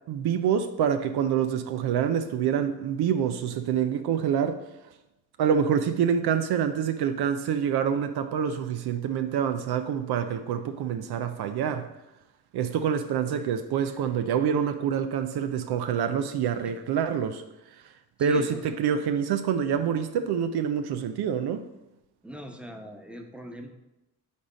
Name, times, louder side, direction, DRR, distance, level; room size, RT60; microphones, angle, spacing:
voice 1, 0.1-4.6 5.4-11.9 12.5-17.9 18.2-21.7, right 8 dB, 70° right, 0.6 m, -26 dB
voice 2, 18.2-18.8 22.2-23.7, equal, 5° right, 1.0 m, -41 dB
9.2 x 3.5 x 4.0 m
supercardioid pair, 60°, 40 cm